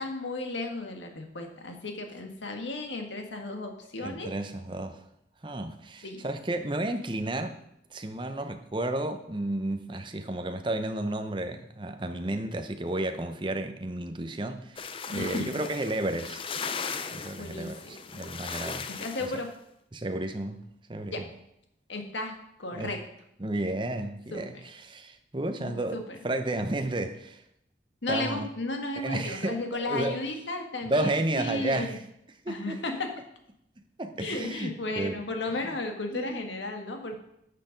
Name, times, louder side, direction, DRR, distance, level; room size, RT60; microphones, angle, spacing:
voice 1, 0.0-4.3 6.0-6.3 15.1-15.6 17.4-17.7 18.9-19.5 21.1-21.3 21.9-23.0 24.3-24.6 25.6-26.2 28.0-32.0 32.5-33.2 34.2-37.2, left 2 dB, 85° left, 4 dB, 1.7 m, -34 dB
voice 2, 4.0-5.0 5.4-7.6 7.9-16.6 17.1-18.9 19.2-19.3 19.9-20.6 20.9-21.3 22.7-22.9 23.4-27.4 28.1-28.5 28.9-30.2 30.8-32.0 32.4-32.8 34.0-35.2 36.1-36.4, right 1 dB, 25° right, 7 dB, 0.8 m, -32 dB
sound 1, 14.8-19.5, left 5 dB, 30° left, 0.5 m, -38 dB
11.5 x 6.7 x 5.2 m, 0.77 s
head